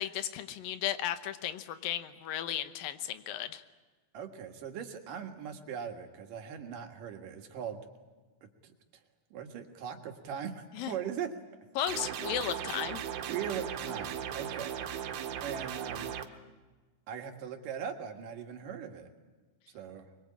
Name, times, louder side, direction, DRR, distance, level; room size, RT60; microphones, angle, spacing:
voice 1, 0.0-3.6 10.7-10.9 11.8-13.0, left 11 dB, 80° left, 11 dB, 2.8 m, -35 dB
voice 2, 4.1-7.8 8.6-8.7 9.3-11.3 13.3-14.7 15.4-16.1 17.1-19.1 19.7-20.1, right 8 dB, 70° right, 4 dB, 3.3 m, -40 dB
sound 1, 11.9-16.3, right 9 dB, 90° right, 3.1 m, -37 dB
24.0 x 22.5 x 8.7 m, 1.3 s
omnidirectional pair, 4.1 m